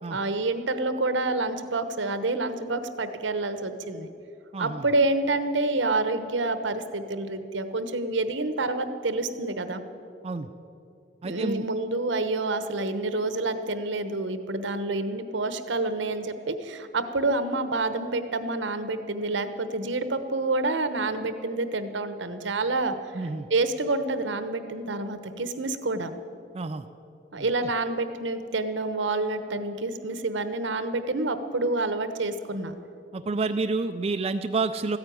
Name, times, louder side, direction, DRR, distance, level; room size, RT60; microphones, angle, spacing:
voice 1, 0.1-4.1 4.6-9.8 11.2-23.1 23.5-26.1 27.3-32.7, right 2 dB, 80° right, 10 dB, 1.0 m, -28 dB
voice 2, 4.5-4.9 10.2-10.5 11.2-11.7 23.1-23.5 26.5-26.9 27.4-27.5 33.1-35.0, right 3 dB, 35° right, 8 dB, 0.4 m, -29 dB
14.0 x 9.7 x 9.2 m, 2.6 s
head